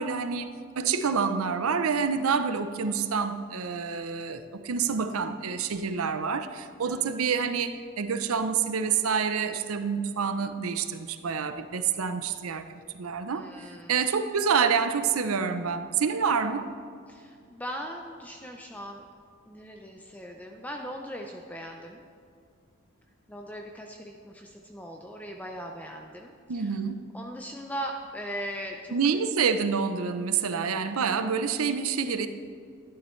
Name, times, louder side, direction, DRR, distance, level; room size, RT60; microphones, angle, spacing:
voice 1, 0.0-12.6 12.9-13.5 13.9-16.7 26.5-27.0 28.9-32.3, right 6 dB, 85° right, 10 dB, 0.6 m, -27 dB
voice 2, 6.8-7.1 13.3-14.0 17.1-19.1 19.5-22.0 23.3-26.8 27.1-29.2 30.3-30.7, equal, 5° left, 2 dB, 0.5 m, -39 dB
12.0 x 11.0 x 3.2 m, 2.3 s
head